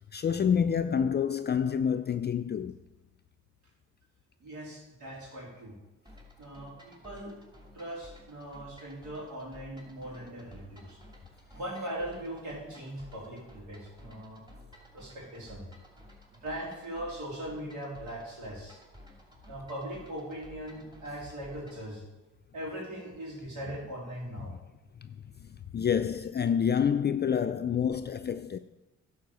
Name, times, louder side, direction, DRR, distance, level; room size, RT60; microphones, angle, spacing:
voice 1, 0.1-2.8 24.4-24.6 25.0-28.6, left 7 dB, 35° left, 0.4 m, -28 dB
voice 2, 4.4-5.7 6.4-7.3 7.7-11.0 11.5-14.4 14.9-15.6 16.4-18.8 19.5-22.0 22.5-24.5, right 1 dB, 90° right, 3.6 m, -40 dB
sound 1, 6.1-21.9, left 1 dB, 15° right, 3.0 m, -54 dB
10.5 x 5.0 x 6.8 m
cardioid pair, 70°, 29 cm